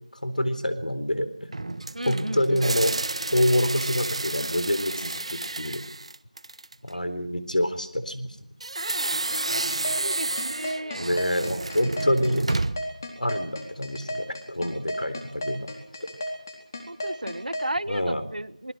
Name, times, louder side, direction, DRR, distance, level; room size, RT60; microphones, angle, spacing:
voice 1, 0.2-1.3 2.1-2.9 3.3-5.8 6.8-8.5 11.0-12.4 13.2-15.7 16.0-16.1 17.9-18.2, left 1 dB, 80° left, 11 dB, 3.8 m, -26 dB
sound 1, 1.5-6.9 8.6-13.0, right 2 dB, 50° right, 1.0 m, -30 dB
voice 2, 1.9-2.7 10.0-11.0 16.9-18.7, right 1 dB, 80° right, 17 dB, 1.3 m, -33 dB
sound 2, 9.3-17.7, left 1 dB, 25° left, 4.0 m, -33 dB
27.5 x 20.5 x 6.4 m, 0.68 s
figure-of-eight pair, 170°, 4 cm